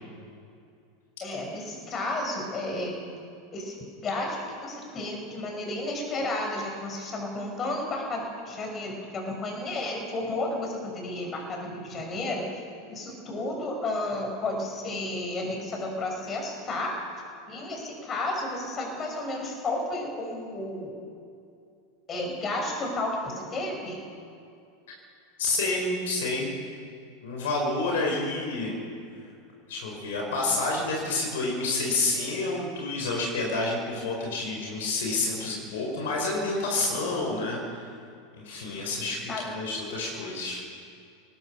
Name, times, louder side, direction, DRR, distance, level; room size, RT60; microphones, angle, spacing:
voice 1, 1.2-3.0 3.5-3.8 4.0-12.4 12.9-16.9 17.5-20.9 22.1-24.0 39.3-39.4, left 2 dB, 30° left, 1 dB, 5.9 m, -32 dB
voice 2, 25.4-26.5 27.2-28.7 29.7-37.9 38.4-40.6, left 2 dB, 65° left, -1 dB, 4.8 m, -29 dB
21.5 x 19.0 x 6.3 m, 2.4 s
figure-of-eight pair, 85°, 0 cm